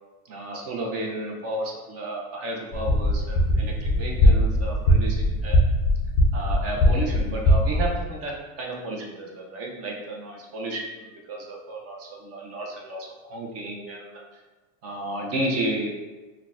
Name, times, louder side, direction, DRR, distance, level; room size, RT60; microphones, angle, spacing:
voice 1, 0.3-5.6 6.3-14.2 14.8-15.9, right 1 dB, 35° right, -1 dB, 0.6 m, -32 dB
sound 1, 2.7-8.0, left 1 dB, 25° left, 0.4 m, -21 dB
3.7 x 2.2 x 2.4 m, 1.2 s
supercardioid pair, 135°, 43 cm